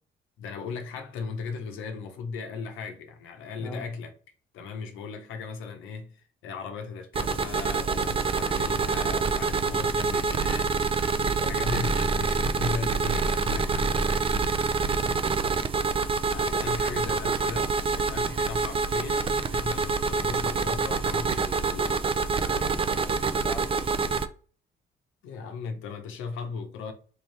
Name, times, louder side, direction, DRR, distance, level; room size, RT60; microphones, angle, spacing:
voice 1, 0.4-4.1 4.5-10.8 11.4-14.4 16.3-22.1 25.2-26.9, left 5 dB, 90° left, 0.8 m, -37 dB
sound 1, 7.1-24.3, right 4 dB, 30° right, 0.4 m, -26 dB
voice 2, 11.2-11.6 14.9-15.2 22.5-24.2, left 1 dB, 10° left, 0.7 m, -41 dB
4.1 x 2.8 x 3.2 m
cardioid pair, 90°, 20 cm